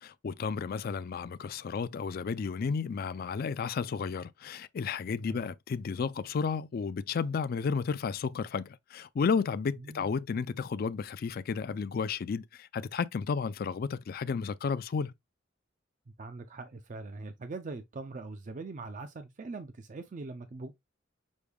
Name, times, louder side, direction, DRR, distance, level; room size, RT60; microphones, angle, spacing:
voice 1, 0.0-15.1, left 5 dB, 50° left, 0.3 m, -32 dB
voice 2, 9.8-10.2 16.2-20.7, right 3 dB, 40° right, 0.4 m, -42 dB
6.2 x 2.2 x 3.4 m
head